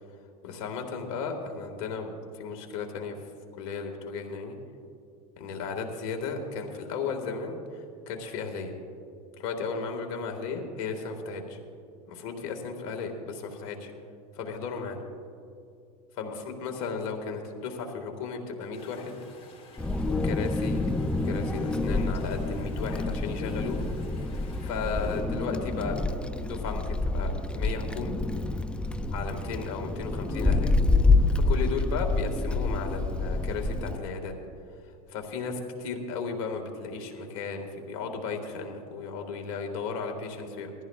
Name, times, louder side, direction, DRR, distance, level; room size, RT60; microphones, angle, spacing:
voice 1, 0.4-3.2 3.6-4.6 5.4-8.7 9.3-11.6 12.1-13.9 14.4-15.0 16.1-19.2 20.1-20.8 21.2-23.9 24.3-26.0 26.4-28.2 29.1-30.7 31.3-34.3 35.1-40.7, left 5 dB, 70° left, 4 dB, 2.1 m, -35 dB
sound 1, 18.7-25.2, left 3 dB, 30° left, 3.8 m, -53 dB
Wind, 19.8-34.0, left 2 dB, 5° left, 0.5 m, -27 dB
21.5 x 14.5 x 2.5 m, 2.6 s
hypercardioid pair, 95°, 19 cm